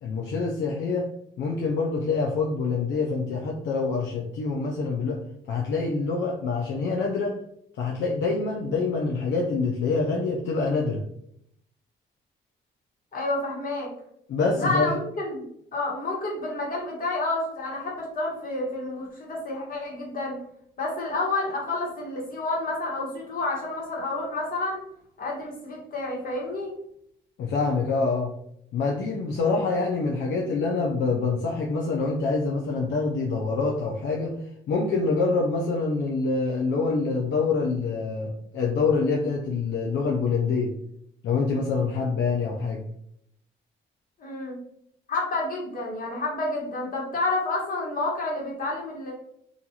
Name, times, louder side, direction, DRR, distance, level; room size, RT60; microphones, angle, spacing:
voice 1, 0.0-1.1 1.4-5.2 5.5-7.4 7.8-11.0 14.3-14.9 27.4-28.3 28.7-34.4 34.7-40.7 41.2-42.8, left 4 dB, 70° left, 0 dB, 0.5 m, -26 dB
voice 2, 13.1-13.9 14.6-15.4 15.7-20.4 20.8-24.8 25.2-26.7 44.2-44.6 45.1-49.1, left 2 dB, 45° left, -2 dB, 1.2 m, -29 dB
2.5 x 2.4 x 2.8 m, 0.71 s
cardioid pair, 90°, 20 cm